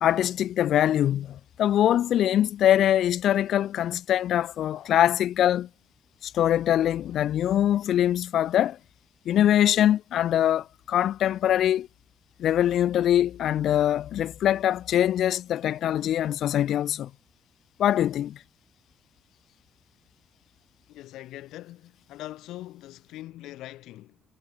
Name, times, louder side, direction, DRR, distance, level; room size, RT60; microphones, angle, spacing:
voice 1, 0.0-5.7 6.2-8.8 9.3-11.9 12.4-17.1 17.8-18.4, left 11 dB, 75° left, 1.8 m, -23 dB
voice 2, 20.9-24.2, left 15 dB, 90° left, 7.1 m, -42 dB
cardioid pair, 90°, 0 cm